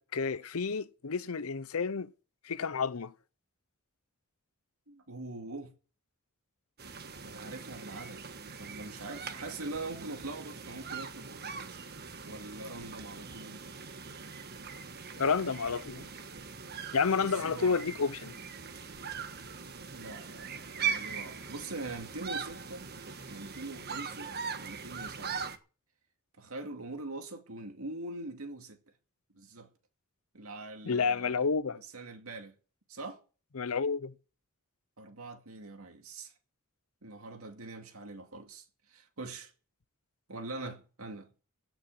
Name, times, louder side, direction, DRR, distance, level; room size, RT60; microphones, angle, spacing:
voice 1, 0.0-2.1 2.4-3.1 15.2-16.1 16.9-18.3 30.9-31.8 33.5-34.1, left 5 dB, 90° left, 0.8 m, -30 dB
voice 2, 4.9-5.7 7.2-8.3 8.6-11.8 12.3-13.6 17.2-17.8 19.9-22.9 23.3-25.5 26.4-28.8 29.3-29.7 30.3-31.4 31.7-32.5 32.9-33.2 35.0-36.3 37.0-39.5 40.3-41.3, right 2 dB, 85° right, 2.4 m, -43 dB
sound 1, 6.8-25.6, right 6 dB, 50° right, 1.3 m, -41 dB
16.5 x 6.2 x 9.3 m
head